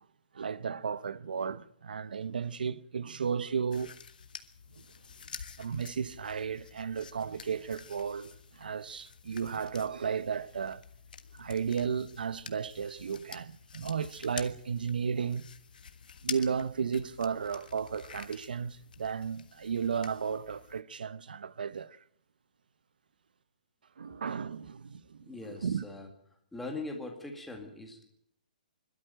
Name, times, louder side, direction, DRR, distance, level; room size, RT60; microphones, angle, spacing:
voice 1, 0.3-4.0 5.6-10.8 11.3-15.5 16.2-22.0 24.0-25.2 25.6-25.8, right 6 dB, 85° right, 0.8 m, -34 dB
sound 1, 3.7-20.8, left 6 dB, 75° left, 1.5 m, -48 dB
voice 2, 25.2-26.1 26.5-28.1, left 2 dB, 5° left, 2.2 m, -41 dB
24.5 x 13.0 x 9.0 m
hypercardioid pair, 170°, 5 cm